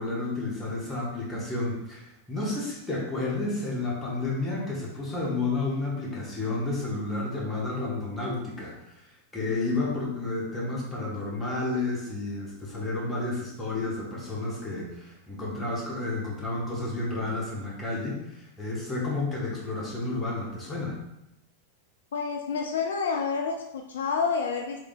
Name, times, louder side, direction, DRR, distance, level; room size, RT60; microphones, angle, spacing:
voice 1, 0.0-8.7 9.3-21.0, left 2 dB, 10° left, -5 dB, 1.4 m, -31 dB
voice 2, 22.1-24.8, left 5 dB, 65° left, 3 dB, 0.3 m, -29 dB
3.2 x 2.7 x 4.0 m, 0.86 s
figure-of-eight pair, 90°, 0 cm